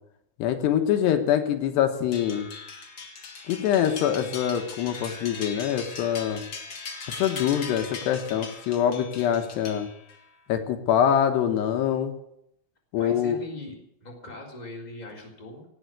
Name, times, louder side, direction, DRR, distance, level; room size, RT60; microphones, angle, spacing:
voice 1, 0.4-2.5 3.5-6.4 7.2-9.9 10.5-12.1 12.9-13.4, left 9 dB, 85° left, 6 dB, 3.3 m, -24 dB
sound 1, 2.1-10.3, left 4 dB, 50° left, 1.3 m, -39 dB
voice 2, 12.9-13.7 14.0-15.6, left 2 dB, 10° left, -2 dB, 3.4 m, -40 dB
17.5 x 7.7 x 9.1 m, 0.77 s
omnidirectional pair, 4.8 m